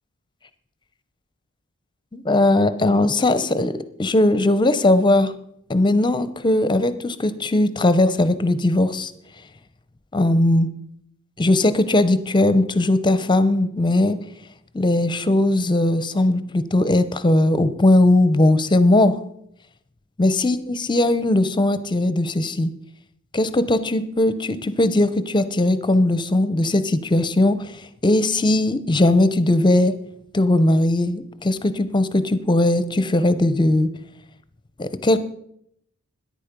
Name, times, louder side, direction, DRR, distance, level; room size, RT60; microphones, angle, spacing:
voice 1, 2.1-5.3 5.7-9.1 10.1-10.7 11.4-14.2 14.7-19.2 20.2-22.7 23.3-27.7 28.0-29.9 30.3-33.9 34.8-35.2, left 1 dB, 20° left, 13 dB, 0.7 m, -19 dB
13.5 x 10.5 x 5.2 m, 0.73 s
head